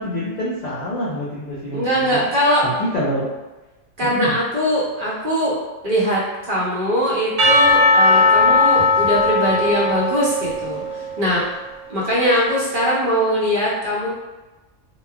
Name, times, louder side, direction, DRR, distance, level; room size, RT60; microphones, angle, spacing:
voice 1, 0.0-3.3 4.0-4.3, equal, 65° left, -7 dB, 0.4 m, -27 dB
voice 2, 1.7-2.6 4.0-5.6 5.8-11.4 11.9-14.1, equal, 45° right, -7 dB, 0.9 m, -21 dB
Percussion / Church bell, 7.4-11.3, left 2 dB, 70° right, 1.2 m, -17 dB
3.0 x 2.3 x 2.3 m, 1.1 s
omnidirectional pair, 1.3 m